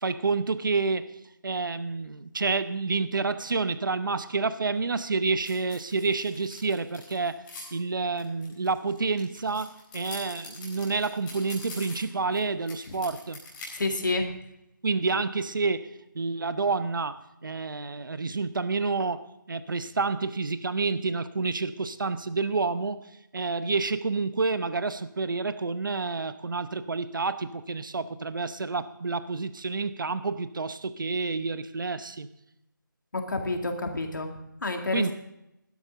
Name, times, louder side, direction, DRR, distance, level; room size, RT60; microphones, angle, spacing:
voice 1, 0.0-7.4 7.7-13.4 14.8-32.3 34.9-35.1, right 4 dB, 70° right, 13 dB, 0.8 m, -29 dB
sound 1, 5.5-7.6 8.2-12.4 12.7-13.8, left 2 dB, 10° left, 4.5 m, -44 dB
voice 2, 13.7-14.3 33.1-35.1, left 2 dB, 65° left, 4 dB, 2.1 m, -29 dB
17.0 x 12.5 x 3.8 m, 0.85 s
figure-of-eight pair, 160°, 11 cm